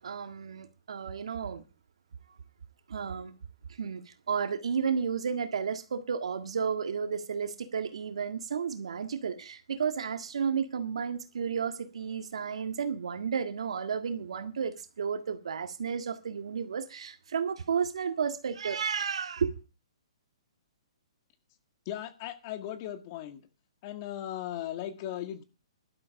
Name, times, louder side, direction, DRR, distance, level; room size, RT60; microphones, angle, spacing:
voice 1, 0.0-1.6 2.9-3.3 3.8-4.0 4.3-19.6, right 6 dB, 75° right, 1.8 m, -32 dB
voice 2, 21.8-23.5 23.8-25.4, left 12 dB, 35° left, 1.8 m, -37 dB
13.0 x 12.0 x 4.8 m
hypercardioid pair, 145°, 3 cm